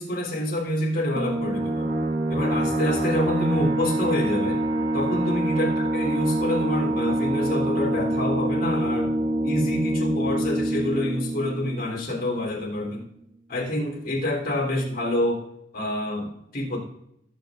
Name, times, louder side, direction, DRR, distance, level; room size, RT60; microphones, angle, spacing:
voice 1, 0.0-1.9 2.3-4.6 4.9-9.1 9.4-13.1 13.5-15.4 15.7-16.8, left 1 dB, 50° left, -2 dB, 3.5 m, -27 dB
sound 1, 1.2-12.4, right 1 dB, 55° right, 1.6 m, -26 dB
17.5 x 8.1 x 2.5 m, 0.76 s
head